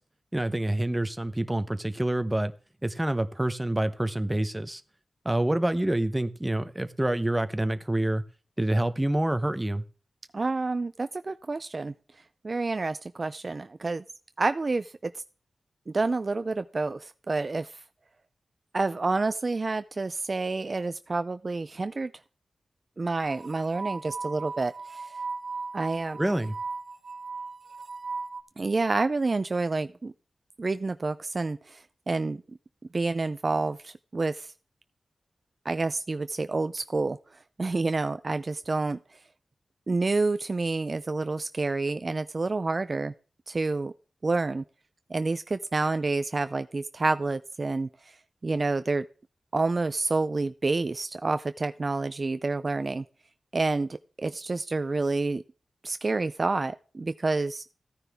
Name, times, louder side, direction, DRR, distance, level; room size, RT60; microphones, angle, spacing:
voice 1, 0.3-2.5 2.8-4.8 5.2-8.2 8.6-9.8 26.2-26.5, right 1 dB, 10° right, 10 dB, 0.8 m, -27 dB
voice 2, 10.3-11.9 12.4-14.0 14.4-15.2 15.9-17.8 18.7-22.1 23.0-25.1 25.7-26.2 28.6-30.1 30.6-32.4 32.9-34.5 35.6-37.2 37.6-39.0 39.9-43.1 43.5-43.9 44.2-44.6 45.1-47.9 48.4-49.1 49.5-53.0 53.5-55.4 55.8-57.6, right 3 dB, 40° right, 11 dB, 0.4 m, -28 dB
sound 1, 23.1-28.4, right 4 dB, 60° right, 1.0 m, -37 dB
14.5 x 9.7 x 3.5 m, 0.38 s
wide cardioid pair, 100°, 0 cm